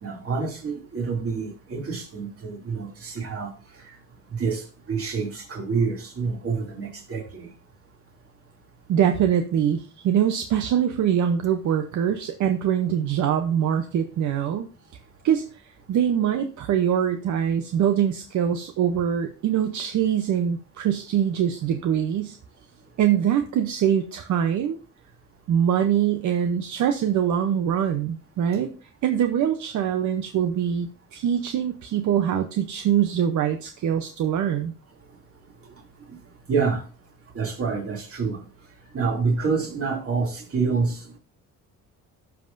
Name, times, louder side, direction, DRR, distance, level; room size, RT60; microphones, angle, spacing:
voice 1, 0.0-4.0 4.3-7.5 36.5-36.8 37.3-38.4 38.9-41.1, right 5 dB, 50° right, 2.7 m, -27 dB
voice 2, 8.9-14.7 15.2-22.4 23.0-24.8 25.5-28.7 29.0-34.7, right 9 dB, 75° right, 0.8 m, -23 dB
12.5 x 5.8 x 2.6 m
cardioid pair, 90°, 30 cm